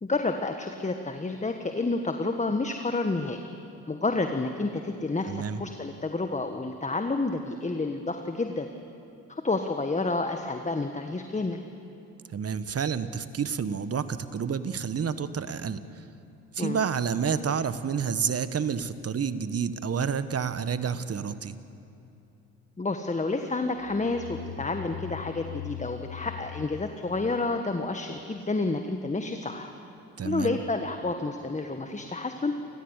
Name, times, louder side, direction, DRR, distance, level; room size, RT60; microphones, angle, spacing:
voice 1, 0.0-3.4 3.9-8.7 9.3-11.6 16.6-16.8 22.8-29.7 30.2-32.5, left 3 dB, 20° left, 6 dB, 1.5 m, -29 dB
voice 2, 5.3-5.6 12.3-15.8 16.5-21.6 30.2-30.6, right 6 dB, 40° right, 12 dB, 1.3 m, -29 dB
sound 1, 23.8-28.3, left 16 dB, 90° left, 0.7 m, -41 dB
29.5 x 14.5 x 8.2 m, 2.8 s
supercardioid pair, 65°, 36 cm